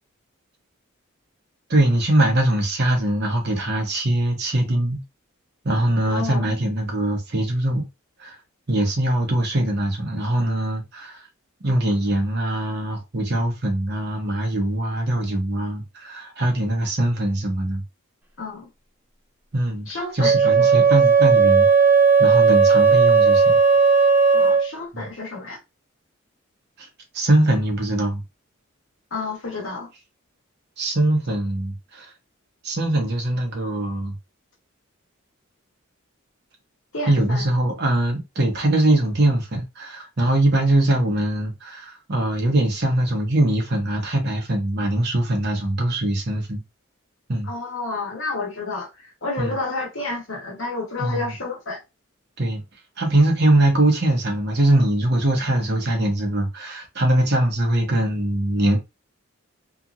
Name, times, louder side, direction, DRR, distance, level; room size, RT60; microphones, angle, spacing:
voice 1, 1.7-5.0 5.6-7.9 8.2-8.3 8.7-11.3 11.6-17.8 19.5-21.7 22.2-23.6 24.9-25.1 26.8-26.9 27.1-28.2 30.8-32.1 32.6-34.2 37.1-46.6 47.3-47.5 49.4-49.5 51.0-51.3 52.4-52.6 53.0-58.8, right 1 dB, 50° right, 0.9 m, -22 dB
voice 2, 6.1-6.5 18.4-18.7 19.9-20.7 24.3-25.6 29.1-29.9 36.9-37.5 47.5-51.8, left 3 dB, 65° left, 1.2 m, -30 dB
Wind instrument woodwind instrument, 20.2-24.7, right 5 dB, 10° right, 0.4 m, -15 dB
2.8 x 2.5 x 2.5 m
head